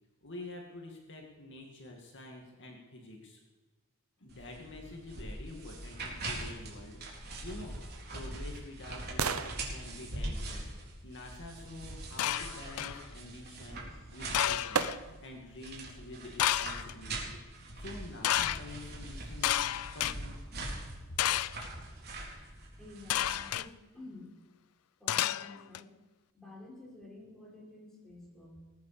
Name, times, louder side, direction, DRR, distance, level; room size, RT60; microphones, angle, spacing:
voice 1, 0.2-3.4 4.2-7.7 8.1-10.7 11.0-20.4 21.1-21.3, left 2 dB, 55° left, 1 dB, 2.2 m, -48 dB
sound 1, 4.3-23.5, right 2 dB, 45° right, 4.0 m, -43 dB
sound 2, 7.7-11.7 13.8-13.9 14.7-15.4 15.9-16.0, right 5 dB, 70° right, 0.9 m, -38 dB
sound 3, 12.2-13.0 14.3-15.0 16.4-16.9 18.2-18.6 19.4-20.1 21.2-21.7 23.1-23.7 25.1-25.8, left 12 dB, 75° left, 0.4 m, -30 dB
voice 2, 22.8-24.4 25.0-25.9 26.3-28.7, left 2 dB, ahead, -4 dB, 5.0 m, -51 dB
20.0 x 8.8 x 6.8 m, 1.2 s
head